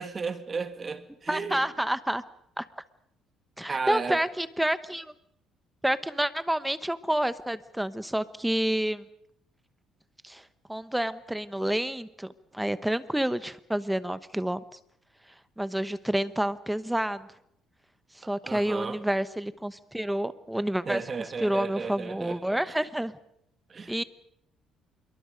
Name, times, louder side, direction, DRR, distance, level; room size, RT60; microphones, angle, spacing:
voice 1, 0.0-1.6 3.7-4.2 18.4-19.0 20.9-22.6 23.7-23.9, right 5 dB, 30° right, 1.8 m, -34 dB
voice 2, 1.3-2.2 2.6-2.7 3.6-5.1 5.8-9.1 10.2-10.4 10.7-14.6 15.6-17.3 18.1-21.0 21.4-23.1 23.9-24.0, right 1 dB, 5° right, 1.0 m, -29 dB
26.5 x 22.5 x 5.2 m
cardioid pair, 130°, 0 cm